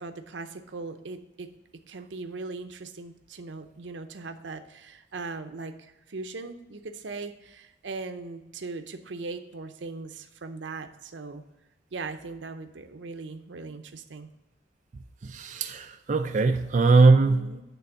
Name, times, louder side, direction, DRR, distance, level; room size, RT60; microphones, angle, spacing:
voice 1, 0.0-1.5 1.9-11.4 11.9-14.3 17.1-17.6, right 3 dB, 85° right, 8 dB, 0.7 m, -39 dB
voice 2, 15.2-17.5, right 3 dB, 40° right, 5 dB, 0.4 m, -21 dB
9.2 x 3.6 x 6.8 m, 1.0 s
head